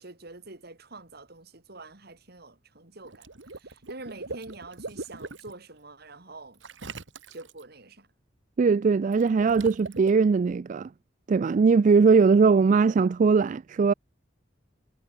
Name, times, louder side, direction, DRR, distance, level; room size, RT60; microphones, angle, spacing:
voice 1, 0.0-3.3 3.5-6.6 7.3-8.1, right 3 dB, 60° right, 3.4 m, -45 dB
Water / Liquid, 3.0-5.5 6.6-7.6 9.1-10.1, right 3 dB, 75° right, 2.0 m, -41 dB
voice 2, 8.6-10.9 11.3-13.9, right 5 dB, 40° right, 0.3 m, -20 dB
head